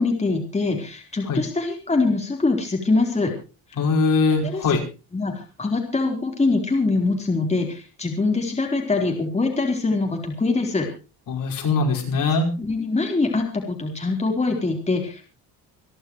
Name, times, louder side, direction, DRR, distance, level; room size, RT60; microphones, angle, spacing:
voice 1, 0.0-3.3 4.4-4.8 5.1-10.9 12.6-15.2, left 3 dB, 15° left, 1 dB, 4.2 m, -23 dB
voice 2, 3.8-4.8 11.3-12.5, left 4 dB, 55° left, 1 dB, 5.4 m, -21 dB
27.5 x 11.5 x 3.1 m, 0.33 s
cardioid pair, 150°, 39 cm